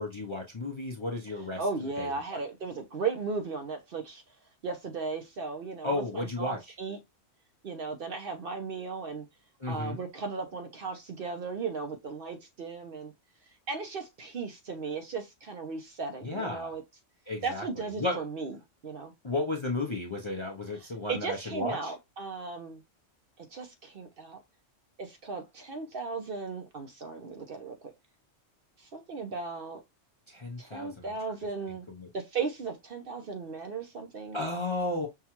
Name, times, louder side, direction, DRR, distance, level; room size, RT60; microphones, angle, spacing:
voice 1, 0.0-1.6 2.0-2.4 5.8-6.7 9.6-10.0 16.2-16.7 17.3-17.6 18.0-18.2 19.2-21.9 30.3-31.1 31.7-32.1 34.3-35.1, left 2 dB, 30° left, 0.6 m, -33 dB
voice 2, 1.6-4.2 4.6-7.0 7.6-9.3 9.7-13.1 13.7-16.8 17.4-18.6 18.8-19.1 21.1-22.8 23.4-24.4 25.0-27.8 28.8-29.8 30.6-31.9 32.1-34.4, right 4 dB, 55° right, 0.8 m, -36 dB
5.7 x 2.3 x 2.9 m
omnidirectional pair, 1.3 m